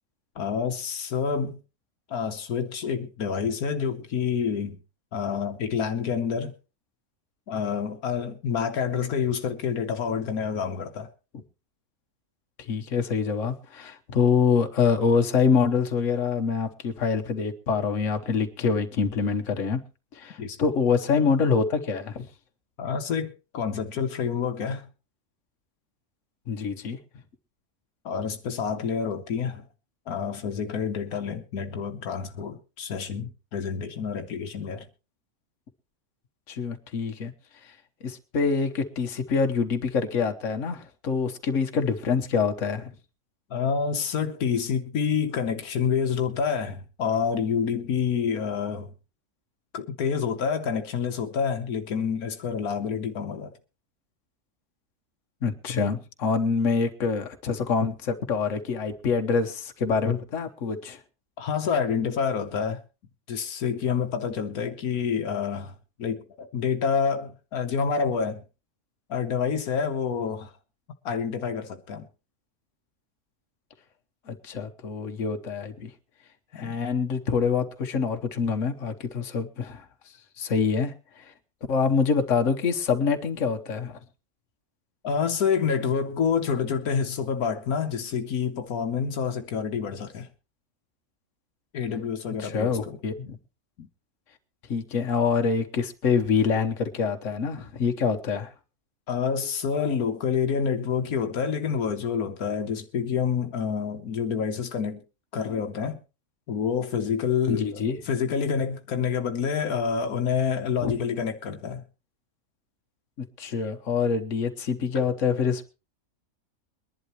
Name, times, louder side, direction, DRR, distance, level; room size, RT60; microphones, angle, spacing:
voice 1, 0.4-1.6 2.1-4.8 5.1-6.5 7.5-11.1 20.4-20.6 22.8-24.9 28.0-29.7 30.1-34.9 43.5-48.9 49.7-53.5 61.4-62.8 63.3-68.4 69.1-70.5 71.0-72.1 76.5-76.8 85.0-90.3 91.7-93.0 93.8-93.9 99.1-105.0 105.3-106.0 106.5-111.8, left 6 dB, 80° left, 1.5 m, -28 dB
voice 2, 12.7-19.8 20.1-22.2 26.5-27.0 36.5-37.3 38.0-42.9 55.4-61.0 74.3-75.9 76.5-79.8 80.4-81.2 81.7-84.0 92.4-93.4 94.7-98.5 107.5-108.0 110.8-110.9 113.4-115.7, left 5 dB, 60° left, 1.5 m, -25 dB
22.5 x 11.0 x 3.1 m
omnidirectional pair, 1.5 m